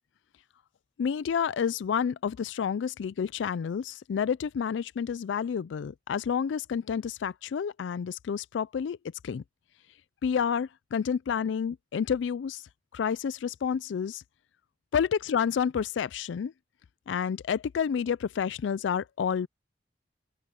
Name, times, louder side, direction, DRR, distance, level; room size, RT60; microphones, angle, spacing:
voice 1, 1.0-9.0 9.2-9.4 10.2-12.6 12.9-14.2 14.9-16.5 17.1-19.5, left 7 dB, 85° left, 0.4 m, -29 dB
open air
head